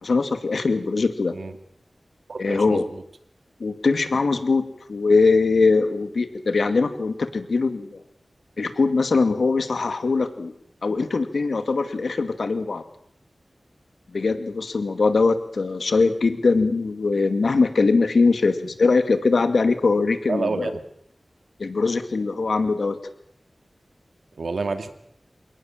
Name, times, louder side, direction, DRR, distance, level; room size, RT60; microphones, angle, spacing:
voice 1, 0.0-1.4 2.4-2.8 3.6-4.6 4.9-8.0 8.6-10.5 10.8-12.8 14.1-20.7 21.6-23.0, left 4 dB, 85° left, 9 dB, 2.4 m, -21 dB
voice 2, 2.3-3.0 20.3-20.8 24.4-24.9, right 4 dB, 85° right, 8 dB, 2.3 m, -28 dB
28.0 x 18.5 x 7.4 m, 0.69 s
wide cardioid pair, 55°, 0 cm